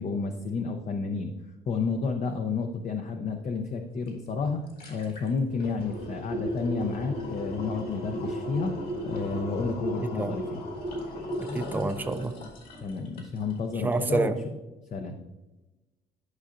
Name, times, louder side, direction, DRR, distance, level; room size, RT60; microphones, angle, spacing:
voice 1, 0.0-1.3 1.7-8.7 9.0-10.6 12.8-14.6 14.9-15.2, left 4 dB, 45° left, 5 dB, 0.7 m, -31 dB
sound 1, 4.1-4.2 4.5-13.6 13.9-14.0, equal, 60° left, 2.5 m, -35 dB
voice 2, 11.4-12.3 13.8-14.4, right 3 dB, 10° right, 7 dB, 0.5 m, -28 dB
11.5 x 5.5 x 2.5 m, 1.1 s
cardioid pair, 110°, 17 cm